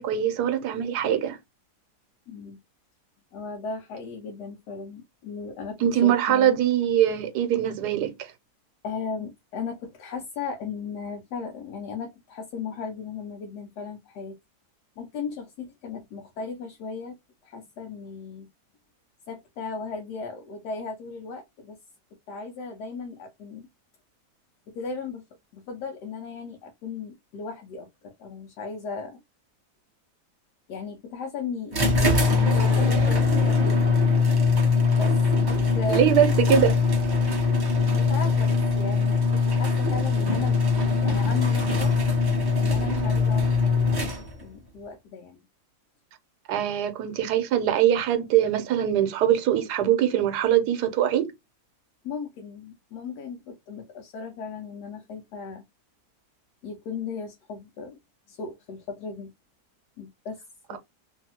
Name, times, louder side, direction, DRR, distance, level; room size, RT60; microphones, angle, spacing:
voice 1, 0.0-1.4 5.8-8.3 35.9-36.8 46.5-51.3 60.7-60.8, right 10 dB, 80° right, 1.2 m, -22 dB
voice 2, 2.3-2.6 3.3-6.6 8.8-14.4 15.0-17.2 17.4-18.5 19.3-21.8 22.3-23.7 24.7-25.2 25.5-29.2 30.7-31.8 32.3-33.9 34.9-35.2 35.5-36.1 37.9-40.6 41.0-42.0 42.6-44.1 44.4-45.4 52.0-55.6 56.6-58.0 58.3-59.3 60.0-60.4 60.7-60.8, left 5 dB, 80° left, 1.2 m, -36 dB
sound 1, 31.7-44.5, left 4 dB, 30° right, 0.4 m, -22 dB
2.8 x 2.7 x 2.8 m
omnidirectional pair, 1.7 m